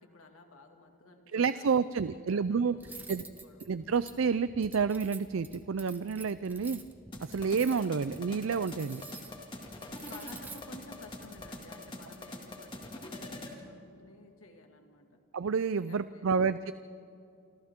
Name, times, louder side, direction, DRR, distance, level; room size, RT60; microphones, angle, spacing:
voice 1, 0.0-3.7 10.0-15.2 15.9-16.6, left 2 dB, 85° left, 4 dB, 2.2 m, -54 dB
voice 2, 1.3-2.8 3.1-3.2 3.7-6.8 7.2-9.0 15.3-16.7, right 5 dB, 75° right, 14 dB, 0.5 m, -29 dB
Cutlery silverware, 2.8-11.5, right 3 dB, 10° right, 1.1 m, -50 dB
sound 1, 7.1-13.6, left 1 dB, 25° left, 2.3 m, -44 dB
28.5 x 25.5 x 3.7 m, 2.6 s
head